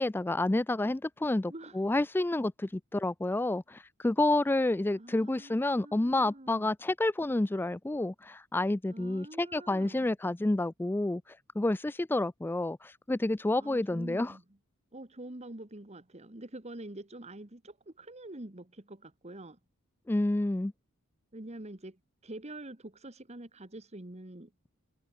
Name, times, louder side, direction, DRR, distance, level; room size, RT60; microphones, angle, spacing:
voice 1, 0.0-14.3 20.1-20.7, left 2 dB, 10° left, 0.3 m, -29 dB
voice 2, 1.5-1.8 5.0-6.7 8.9-10.1 13.6-14.4 14.9-19.6 21.3-24.5, right 1 dB, 30° right, 1.6 m, -46 dB
head